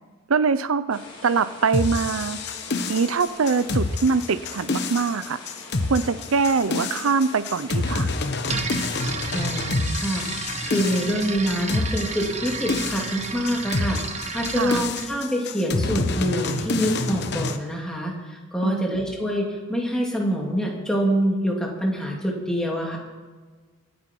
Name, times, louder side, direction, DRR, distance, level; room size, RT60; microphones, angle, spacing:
voice 1, 0.3-2.4 2.9-5.4 5.9-8.1 14.5-14.8 18.6-19.0, right 5 dB, 90° right, 14 dB, 0.6 m, -23 dB
sound 1, 0.9-8.3, left 2 dB, 25° left, 2.8 m, -43 dB
sound 2, 1.7-17.6, left 3 dB, 55° left, 1.1 m, -28 dB
sound 3, 8.5-15.1, right 4 dB, 35° right, 1.1 m, -32 dB
voice 2, 9.3-23.0, equal, 5° left, -2 dB, 2.7 m, -26 dB
25.5 x 9.4 x 4.6 m, 1.4 s
head